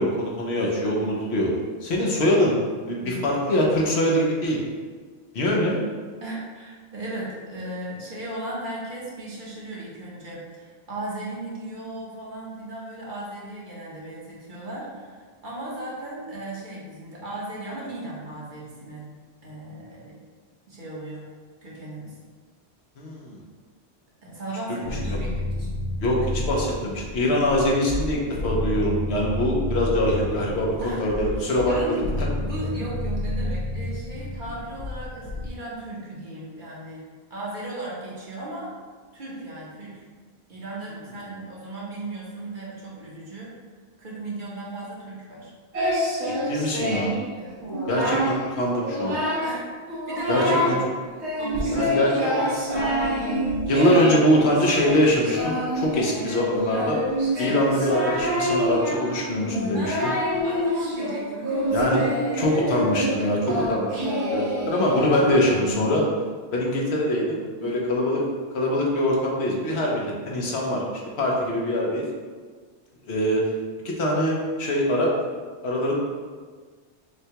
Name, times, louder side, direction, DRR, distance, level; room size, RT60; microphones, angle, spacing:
voice 1, 0.0-1.5 1.8-2.6 2.9-4.6 5.3-5.8 23.0-23.4 24.8-25.2 26.0-32.3 46.2-47.1 47.9-49.2 50.3-50.8 51.7-52.5 52.9-53.4 53.7-57.0 57.4-60.1 61.7-62.0 62.3-66.1 66.5-68.2 68.5-70.8 71.2-72.0 73.1-73.4 73.8-75.1 75.6-76.0, left 1 dB, 75° left, -2 dB, 1.1 m, -23 dB
voice 2, 6.2-19.1 19.4-20.2 20.7-21.3 21.6-22.2 24.2-25.7 27.2-27.5 30.8-31.0 31.6-32.0 32.4-37.0 37.3-38.7 39.1-40.0 40.5-43.5 44.0-45.5 47.3-47.6 49.4-50.8 51.4-51.9 52.8-53.5 53.9-54.1 57.4-57.6 59.7-60.0 60.4-61.9 67.6-67.9, right 2 dB, 50° right, -6 dB, 1.0 m, -36 dB
sound 1, 24.8-35.5, left 2 dB, 55° left, 0.6 m, -30 dB
Singing, 45.7-47.2 47.6-48.4 48.8-49.6 49.9-50.8 51.2-65.7, equal, 85° right, 1.3 m, -26 dB
6.4 x 2.2 x 2.9 m, 1.5 s
omnidirectional pair, 1.1 m